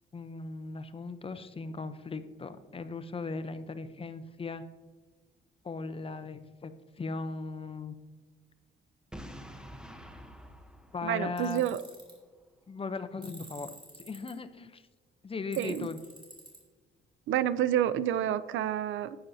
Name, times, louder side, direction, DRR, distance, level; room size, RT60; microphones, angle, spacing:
voice 1, 0.1-4.6 5.6-7.9 10.9-11.6 12.7-13.7 13.9-14.8 15.2-16.0, left 4 dB, 30° left, 11 dB, 0.7 m, -38 dB
Boom, 9.1-12.0, equal, 5° right, 0.9 m, -47 dB
voice 2, 11.0-11.8 15.6-15.9 17.3-19.2, right 11 dB, 80° right, 16 dB, 0.5 m, -29 dB
Tools, 11.4-12.1 13.2-14.3 15.5-16.6, right 2 dB, 25° right, 3.1 m, -49 dB
11.5 x 8.8 x 2.7 m, 1.4 s
cardioid pair, 90°, 20 cm